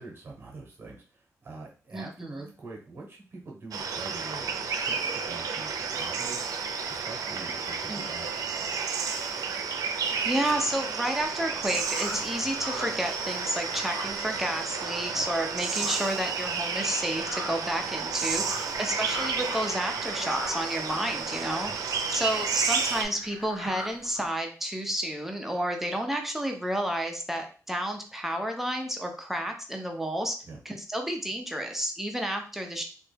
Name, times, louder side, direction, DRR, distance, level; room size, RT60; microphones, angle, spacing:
voice 1, 0.0-6.5 6.9-9.0 15.1-15.3 18.3-18.6 21.4-21.8 30.4-30.6, right 3 dB, 35° right, 0 dB, 0.9 m, -45 dB
sound 1, 3.7-23.0, right 5 dB, 75° right, 0.4 m, -31 dB
voice 2, 10.2-21.7 22.1-30.3 30.7-32.8, equal, 5° right, 3 dB, 0.4 m, -31 dB
sound 2, 11.6-15.2 15.5-24.3, left 1 dB, 50° left, 0.9 m, -42 dB
3.1 x 2.2 x 3.2 m, 0.38 s
wide cardioid pair, 165°, 6 cm